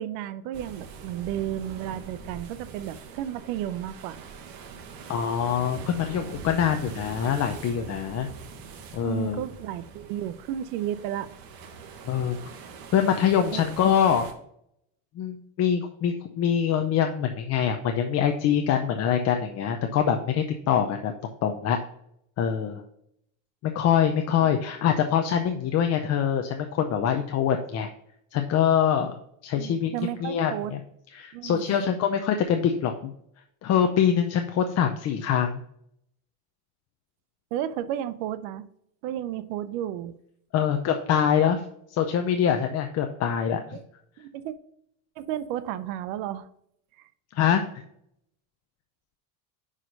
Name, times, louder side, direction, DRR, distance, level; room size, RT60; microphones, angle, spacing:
voice 1, 0.0-4.2 9.0-11.3 13.5-13.6 29.5-30.7 31.3-31.8 37.5-38.6 39.0-40.1 43.7-43.8 44.2-44.5 45.2-46.5 47.0-47.1, right 11 dB, 75° right, 13 dB, 0.7 m, -33 dB
sound 1, 0.5-14.3, right 5 dB, 50° right, 1.3 m, -43 dB
voice 2, 5.1-8.3 8.9-9.4 12.0-12.4 12.9-14.3 15.2-21.1 21.4-21.8 22.4-22.8 23.6-27.9 28.3-29.1 29.4-29.9 30.2-30.8 31.1-33.1 33.6-35.6 40.5-41.6 41.9-43.8 47.3-47.6, left 8 dB, 35° left, 5 dB, 0.6 m, -24 dB
5.7 x 4.9 x 5.2 m, 0.73 s
cardioid pair, 135°, 45 cm